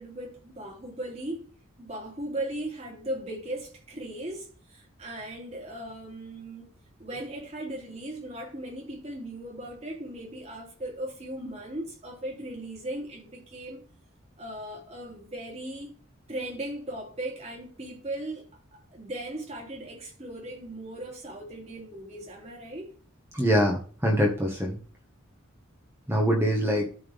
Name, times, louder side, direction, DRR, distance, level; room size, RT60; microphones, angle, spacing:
voice 1, 0.0-1.5 1.8-6.7 7.0-13.8 14.4-15.9 16.3-22.9, right 1 dB, 30° right, 3.4 m, -38 dB
voice 2, 23.3-24.8 26.1-26.9, equal, 10° right, 1.7 m, -24 dB
13.0 x 4.8 x 3.6 m
head